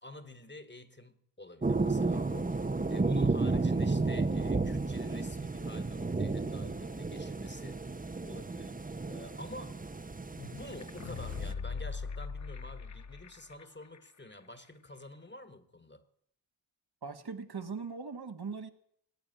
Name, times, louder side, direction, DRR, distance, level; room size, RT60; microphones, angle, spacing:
voice 1, 0.0-7.8 8.2-9.8 10.4-16.0, left 2 dB, 25° left, 1.4 m, -48 dB
sound 1, 1.6-11.5, right 3 dB, 20° right, 0.7 m, -32 dB
sound 2, 10.7-13.6 13.9-14.0, left 5 dB, 40° left, 0.6 m, -39 dB
voice 2, 17.0-18.7, right 5 dB, 55° right, 1.5 m, -40 dB
17.5 x 8.9 x 8.9 m
wide cardioid pair, 75°, 46 cm